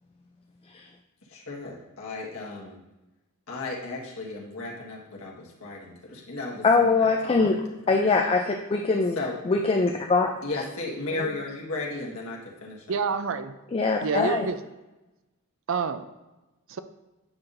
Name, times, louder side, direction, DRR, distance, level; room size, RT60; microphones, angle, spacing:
voice 1, 1.3-2.8 3.5-7.6 7.9-8.1 9.1-9.4 10.4-13.0, left 3 dB, 65° left, -3 dB, 1.4 m, -35 dB
voice 2, 6.6-7.6 7.9-9.2 9.5-10.4 13.7-14.5, left 4 dB, 25° left, 3 dB, 0.3 m, -22 dB
voice 3, 12.9-13.5 14.0-14.6 15.7-16.0 16.7-16.8, right 5 dB, 60° right, 11 dB, 0.4 m, -28 dB
8.7 x 5.6 x 2.6 m, 1.0 s
head